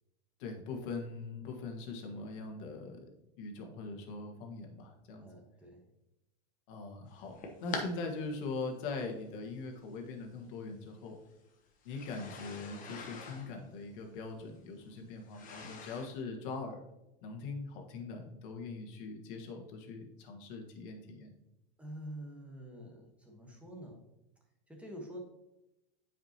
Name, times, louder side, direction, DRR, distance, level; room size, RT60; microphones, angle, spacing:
voice 1, 0.4-3.0 3.4-5.3 6.7-7.3 7.6-11.1 11.8-16.8 17.2-21.3, left 3 dB, 55° left, 2 dB, 1.7 m, -41 dB
voice 2, 5.2-5.8 21.8-24.1 24.7-25.2, equal, 5° right, 1 dB, 1.3 m, -47 dB
sound 1, 7.1-7.9 8.9-9.0 10.2-10.3 11.8-16.2, left 4 dB, 25° left, 1.1 m, -44 dB
8.8 x 5.2 x 2.9 m, 0.91 s
supercardioid pair, 140°, 31 cm